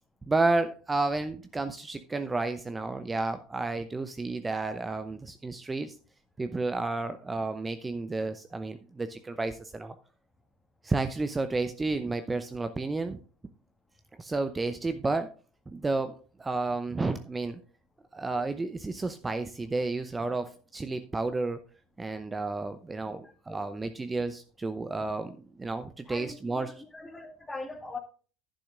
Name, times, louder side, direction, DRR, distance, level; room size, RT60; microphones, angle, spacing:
voice 1, 0.3-6.0 6.4-9.9 10.8-13.2 14.2-15.3 15.7-17.6 18.1-21.6 22.0-26.8, right 3 dB, 15° right, 0.7 m, -31 dB
voice 2, 26.1-26.7 26.9-28.0, left 3 dB, 15° left, 1.9 m, -40 dB
11.5 x 10.0 x 2.5 m
figure-of-eight pair, 70°, 0 cm